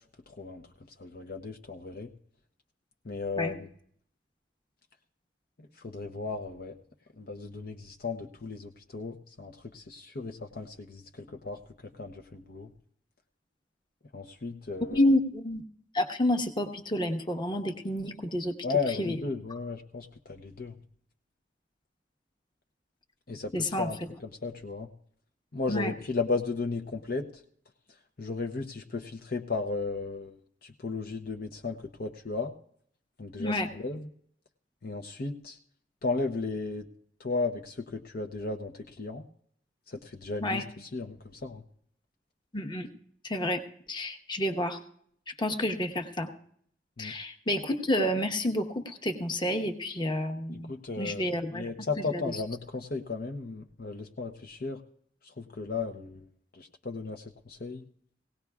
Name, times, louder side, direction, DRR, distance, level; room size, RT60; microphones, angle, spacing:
voice 1, 0.3-0.7 1.0-2.1 3.0-3.7 5.6-6.8 7.2-12.7 14.1-15.0 18.6-20.8 23.3-24.9 25.5-27.4 28.2-30.4 30.6-32.5 33.2-34.1 34.8-35.6 36.0-36.9 37.2-39.2 39.9-41.6 47.0-47.1 50.7-54.8 55.2-56.3 56.5-57.9, left 3 dB, 55° left, 4 dB, 0.7 m, -35 dB
voice 2, 14.9-15.6 15.9-18.6 19.0-19.2 23.5-23.9 25.7-25.9 33.4-33.7 40.4-40.6 42.5-42.9 43.2-43.6 43.9-44.8 45.4-46.3 47.0-50.7 51.0-51.7 52.1-52.2, left 1 dB, 25° left, 5 dB, 1.1 m, -29 dB
20.0 x 17.5 x 2.4 m, 0.65 s
head